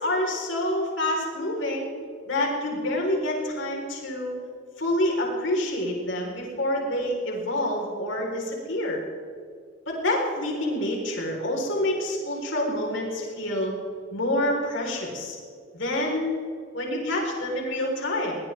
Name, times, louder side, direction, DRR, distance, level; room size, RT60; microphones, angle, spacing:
voice 1, 0.0-1.9 2.3-4.3 4.8-9.0 9.9-13.7 14.1-15.4 15.7-18.4, left 1 dB, 70° left, -1 dB, 4.2 m, -27 dB
22.5 x 18.0 x 3.5 m, 2.2 s
head